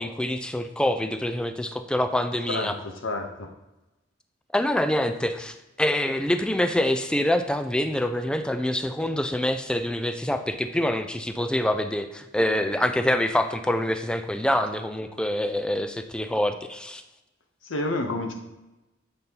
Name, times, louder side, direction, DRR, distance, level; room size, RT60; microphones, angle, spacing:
voice 1, 0.0-2.7 4.5-17.0, left 1 dB, 5° left, 8 dB, 0.4 m, -26 dB
voice 2, 2.5-3.5 17.6-18.3, left 2 dB, 85° left, 3 dB, 0.8 m, -29 dB
8.0 x 5.3 x 2.9 m, 1.0 s
head